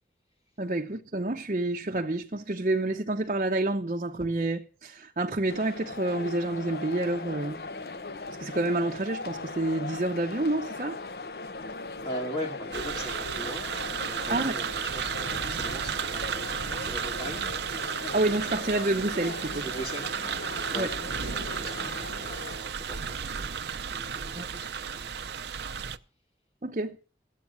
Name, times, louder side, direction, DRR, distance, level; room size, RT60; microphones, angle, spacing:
voice 1, 0.6-7.6 8.4-11.0 14.3-14.6 18.1-19.7 20.8-20.9 24.3-24.5 26.6-27.0, right 2 dB, 45° right, 0.8 m, -28 dB
sound 1, 5.5-22.6, left 3 dB, 65° left, 0.9 m, -39 dB
voice 2, 12.0-17.4 19.6-20.1 20.7-20.9 21.3-25.3, equal, 35° left, 2.3 m, -40 dB
sound 2, 12.7-26.0, right 7 dB, 75° right, 0.6 m, -33 dB
14.5 x 8.3 x 7.2 m
head